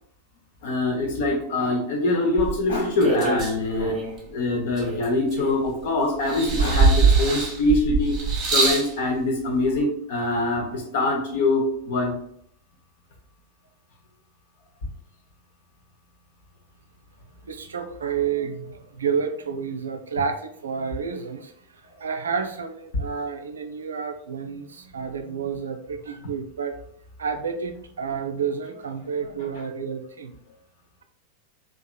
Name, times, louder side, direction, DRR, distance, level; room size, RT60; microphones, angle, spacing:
voice 1, 0.6-4.0 4.3-8.2 8.5-12.1, left 2 dB, 55° left, 1 dB, 0.7 m, -24 dB
sound 1, 2.4-4.2 4.8-5.8 6.3-8.9 9.8-9.9, right 4 dB, 30° right, 0.8 m, -22 dB
voice 2, 17.5-26.8 27.2-30.3, right 6 dB, 70° right, 6 dB, 0.3 m, -30 dB
2.9 x 2.4 x 2.2 m, 0.65 s
figure-of-eight pair, 90°, 0 cm